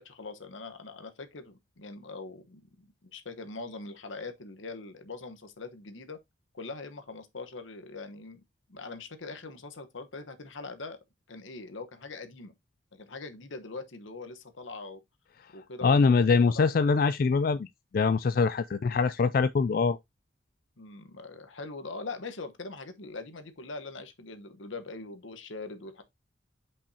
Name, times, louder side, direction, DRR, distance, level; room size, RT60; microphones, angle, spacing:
voice 1, 0.0-6.2 6.5-8.4 8.7-11.0 11.3-12.5 12.9-15.0 15.5-16.7 20.8-26.0, left 3 dB, 85° left, 1.2 m, -42 dB
voice 2, 15.8-17.7 17.9-20.0, left 4 dB, 50° left, 0.3 m, -23 dB
8.6 x 5.4 x 2.8 m
head